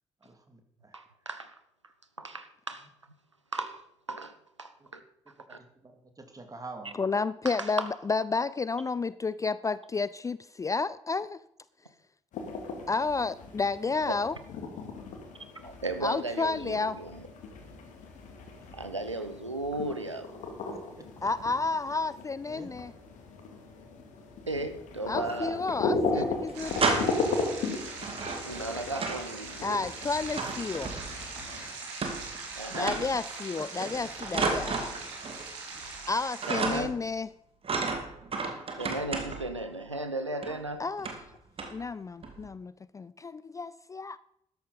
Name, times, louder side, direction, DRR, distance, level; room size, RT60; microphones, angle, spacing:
voice 1, 0.2-1.0 4.8-4.9 5.6-7.0 20.7-21.3 22.5-22.7 32.7-32.9 33.6-34.1 36.6-36.8, right 2 dB, 25° right, 2.7 m, -46 dB
voice 2, 0.9-1.6 1.8-1.9 2.2-2.9 3.5-3.8 4.1-5.0 5.5-5.6 7.4-7.9 15.5-17.3 18.7-20.5 24.5-25.6 26.1-26.3 28.4-29.8 32.6-33.0 36.5-36.9 38.8-40.8, right 2 dB, 90° right, 0.7 m, -36 dB
voice 3, 7.0-11.4 12.9-14.3 16.0-17.0 21.2-22.9 25.1-26.9 29.6-30.9 32.7-35.0 36.1-37.3 38.4-38.5 40.8-41.1 41.7-44.2, left 4 dB, 20° left, 0.4 m, -31 dB
sound 1, 12.3-31.7, left 3 dB, 55° left, 2.5 m, -36 dB
sound 2, 25.1-25.8 26.1-26.2 26.5-27.4 28.0-29.3 29.6-31.3 32.0-32.5 32.7-33.2 33.8-35.5 35.8-36.1 36.4-37.1 37.6-39.6 40.4-40.6 41.0-41.3 41.6-41.8 42.2-42.5, right 4 dB, 40° right, 2.4 m, -33 dB
sound 3, 26.5-36.8, right 4 dB, 70° right, 2.7 m, -41 dB
13.5 x 10.5 x 5.3 m
figure-of-eight pair, 40°, 15 cm